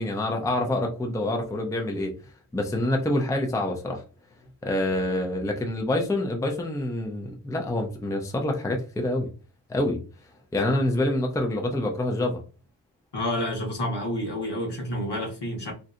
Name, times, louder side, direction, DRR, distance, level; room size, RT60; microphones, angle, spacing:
voice 1, 0.0-2.1 2.5-4.0 4.6-9.3 9.7-10.0 10.5-12.4, left 1 dB, 10° left, 0.5 m, -26 dB
voice 2, 13.1-15.7, left 1 dB, 65° left, 1.2 m, -29 dB
3.1 x 2.7 x 2.5 m
wide cardioid pair, 100°, 44 cm